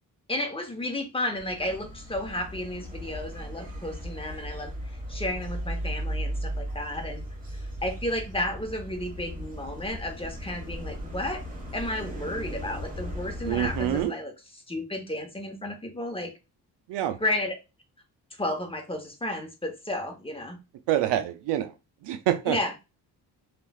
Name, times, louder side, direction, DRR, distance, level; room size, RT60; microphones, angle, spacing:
voice 1, 0.3-4.7 5.1-7.2 7.5-11.4 11.7-14.3 14.7-16.3 17.2-17.5 18.4-20.6 22.5-22.8, left 1 dB, 15° left, 0.9 m, -32 dB
sound 1, 1.4-14.1, equal, 20° right, 1.3 m, -36 dB
voice 2, 13.5-14.1 16.9-17.2 20.9-21.7 22.0-22.6, right 12 dB, 85° right, 0.5 m, -26 dB
3.1 x 2.4 x 2.3 m
cardioid pair, 65°, 40 cm